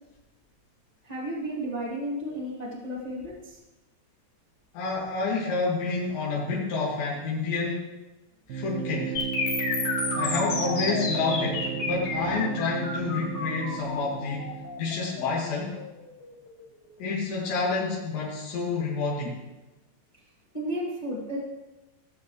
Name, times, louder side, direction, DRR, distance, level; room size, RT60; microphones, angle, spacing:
voice 1, 1.0-3.6 20.5-21.4, equal, 40° left, -5 dB, 0.5 m, -33 dB
voice 2, 4.7-7.9 8.5-9.2 10.1-14.5 14.8-15.8 17.0-19.4, left 4 dB, 90° left, -6 dB, 4.3 m, -29 dB
sound 1, 8.5-15.1, right 9 dB, 70° right, 2.4 m, -34 dB
sound 2, 9.2-17.1, left 4 dB, 60° left, 3.5 m, -32 dB
17.5 x 7.7 x 3.2 m, 1.0 s
omnidirectional pair, 4.9 m